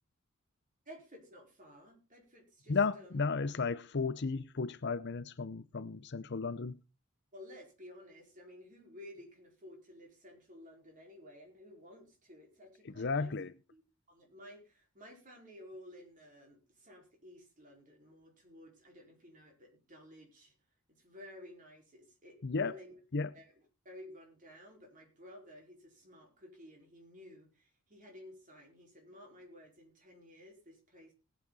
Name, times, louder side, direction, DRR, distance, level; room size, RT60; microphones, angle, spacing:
voice 1, 0.8-3.2 7.3-13.3 13.7-13.8 14.1-20.5 21.0-23.0 23.3-23.5 23.8-31.1, left 1 dB, 40° right, 4.8 m, -54 dB
voice 2, 2.7-6.8 12.8-13.5 22.4-22.8 23.1-23.3, left 4 dB, 55° left, 0.7 m, -34 dB
18.5 x 8.4 x 4.1 m
head